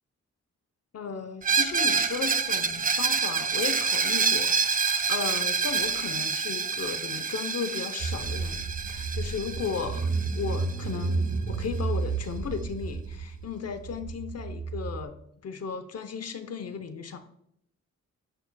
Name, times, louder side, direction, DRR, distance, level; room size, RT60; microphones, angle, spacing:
voice 1, 0.9-10.1 10.4-15.1 15.4-17.2, left 6 dB, 55° left, 9 dB, 0.8 m, -35 dB
Screech, 1.4-11.1, right 5 dB, 30° right, 0.5 m, -27 dB
Car / Engine, 8.0-15.0, right 4 dB, 75° right, 0.9 m, -32 dB
9.9 x 6.8 x 2.3 m, 0.74 s
wide cardioid pair, 110°, 29 cm